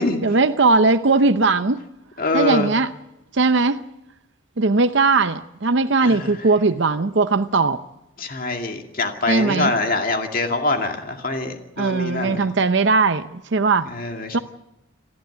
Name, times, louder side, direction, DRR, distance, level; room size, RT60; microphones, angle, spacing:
voice 1, 0.2-1.8 2.3-2.9 3.3-3.8 4.6-7.8 9.3-9.7 11.8-13.9 14.3-14.4, right 3 dB, 60° right, 0.7 m, -19 dB
voice 2, 2.2-2.7 6.0-6.3 8.2-12.5 13.9-14.4, left 2 dB, 45° left, 2.3 m, -24 dB
28.0 x 12.0 x 9.4 m
head